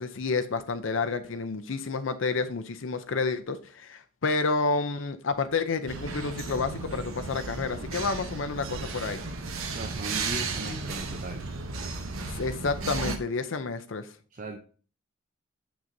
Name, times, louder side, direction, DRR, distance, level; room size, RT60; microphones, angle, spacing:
voice 1, 0.0-9.2 12.3-14.1, left 4 dB, 65° left, 0.6 m, -30 dB
sound 1, 5.9-13.2, right 3 dB, 80° right, 0.9 m, -34 dB
voice 2, 9.7-11.5 14.3-14.6, right 2 dB, 40° right, 0.6 m, -38 dB
7.1 x 6.1 x 2.7 m
head